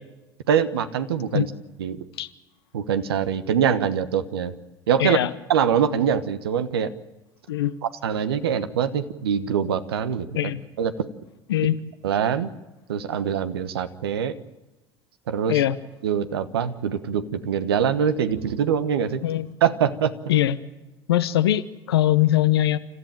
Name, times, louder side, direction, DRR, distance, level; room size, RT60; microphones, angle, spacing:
voice 1, 0.5-1.5 1.8-2.0 2.7-4.5 4.9-5.2 5.5-6.9 7.8-10.5 10.8-10.9 12.0-12.5 12.9-14.3 15.3-15.6 16.0-19.2 19.6-20.1, right 8 dB, 80° right, 11 dB, 1.2 m, -24 dB
voice 2, 5.0-5.3 7.5-7.7 10.3-10.6 11.5-11.7 15.5-15.8 19.2-19.5 20.3-20.6 21.1-22.8, left 13 dB, 80° left, 12 dB, 1.0 m, -21 dB
29.0 x 14.0 x 9.0 m, 1.1 s
hypercardioid pair, 70°, 13 cm